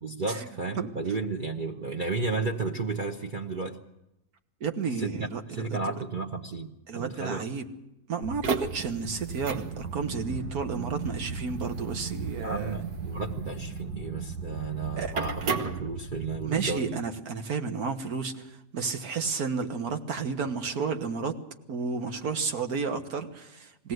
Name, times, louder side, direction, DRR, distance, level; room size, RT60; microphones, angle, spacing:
voice 1, 0.0-3.8 4.9-7.5 12.4-17.0, right 4 dB, 35° right, 2 dB, 1.0 m, -33 dB
voice 2, 4.6-5.9 6.9-7.7 8.1-12.7 15.0-15.1 16.4-18.5 18.7-21.4 21.7-23.9, right 5 dB, 70° right, 7 dB, 1.9 m, -32 dB
sound 1, 8.2-16.5, right 4 dB, 90° right, 1.8 m, -34 dB
20.5 x 17.0 x 7.9 m, 0.90 s
omnidirectional pair, 1.7 m